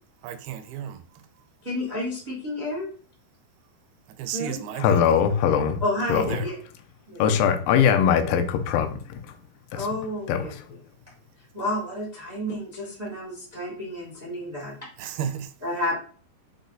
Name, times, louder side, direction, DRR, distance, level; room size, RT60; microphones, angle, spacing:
voice 1, 0.2-1.2 4.2-5.2 6.1-6.5 15.0-15.5, right 9 dB, 85° right, 2.4 m, -34 dB
voice 2, 1.6-2.9 4.3-4.6 5.8-6.6 7.1-7.2 9.7-10.8 11.5-14.8 15.6-15.9, left 1 dB, 50° right, 0.4 m, -30 dB
voice 3, 4.8-5.8 6.1-6.4 7.2-8.9 10.3-10.4, left 8 dB, 80° left, 2.1 m, -21 dB
6.1 x 2.2 x 3.8 m
omnidirectional pair, 4.4 m